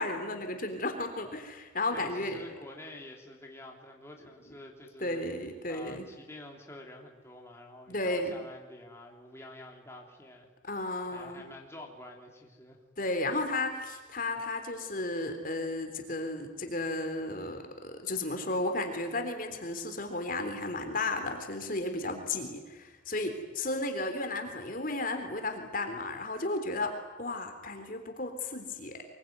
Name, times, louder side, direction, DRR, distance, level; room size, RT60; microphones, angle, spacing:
voice 1, 0.0-2.4 5.0-6.1 7.9-8.3 10.6-11.4 13.0-29.0, left 2 dB, 45° left, 6 dB, 3.5 m, -34 dB
voice 2, 1.9-5.3 5.7-12.8, left 1 dB, 15° left, 0 dB, 3.4 m, -48 dB
24.5 x 23.0 x 9.5 m, 1.2 s
head